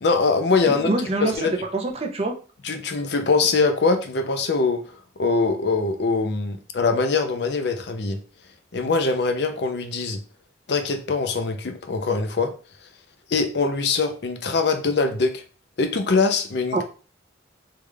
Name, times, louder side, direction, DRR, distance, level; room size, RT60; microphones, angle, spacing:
voice 1, 0.0-0.9 1.2-1.5 2.6-4.8 5.2-8.2 8.7-10.2 10.7-12.5 13.3-15.4 15.8-16.8, left 4 dB, 60° left, 6 dB, 0.5 m, -22 dB
voice 2, 0.7-2.3 16.7-16.8, right 2 dB, 30° right, 2 dB, 0.5 m, -25 dB
3.4 x 2.4 x 3.2 m, 0.36 s
head